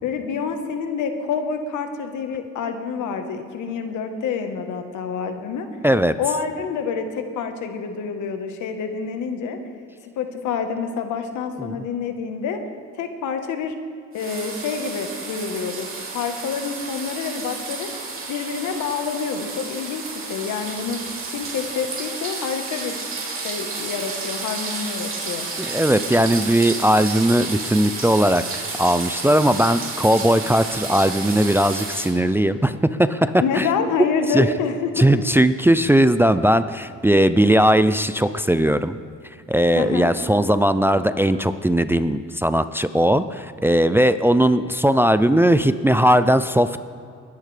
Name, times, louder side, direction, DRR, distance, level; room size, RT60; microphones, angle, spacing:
voice 1, 0.0-5.7 6.2-9.6 10.2-12.6 12.9-13.7 14.1-15.9 16.1-17.9 18.3-21.0 21.3-23.0 23.4-25.5 33.4-35.2 39.7-40.1, left 6 dB, 80° left, 7 dB, 1.3 m, -27 dB
voice 2, 5.8-6.1 11.6-11.8 25.6-33.7 34.3-34.5 35.0-39.0 39.5-46.8, right 1 dB, 10° right, 12 dB, 0.4 m, -18 dB
sound 1, 14.1-32.1, right 4 dB, 45° right, 3.0 m, -31 dB
21.0 x 10.5 x 3.3 m, 2.4 s
cardioid pair, 90°, 30 cm